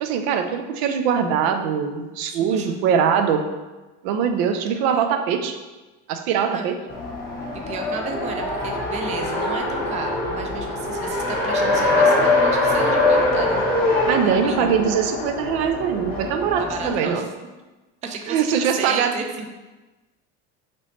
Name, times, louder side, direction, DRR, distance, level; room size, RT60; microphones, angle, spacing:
voice 1, 0.0-3.4 4.0-5.6 6.1-6.8 14.1-17.3 18.3-19.2, right 7 dB, 90° right, 7 dB, 0.5 m, -22 dB
voice 2, 2.3-2.8 6.5-6.7 7.7-13.7 14.2-14.8 16.6-17.2 18.0-19.5, right 4 dB, 25° right, 3 dB, 0.3 m, -33 dB
Race car auto racing, 6.9-16.9, left 2 dB, 30° left, 0.9 m, -23 dB
3.0 x 3.0 x 4.1 m, 1.2 s
cardioid pair, 145°, 30 cm